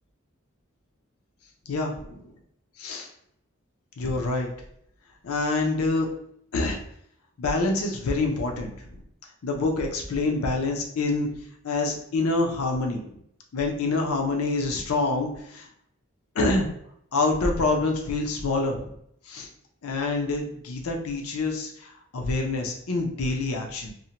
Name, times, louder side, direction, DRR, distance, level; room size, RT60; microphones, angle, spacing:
voice 1, 1.7-2.3 2.8-3.1 4.0-4.5 5.2-6.1 6.5-6.8 7.4-8.7 9.4-11.3 11.6-13.2 13.5-15.7 16.4-16.7 17.1-18.9 19.3-19.5 19.8-23.9, left 3 dB, 90° left, 2 dB, 0.5 m, -26 dB
2.6 x 2.1 x 2.8 m, 0.69 s
head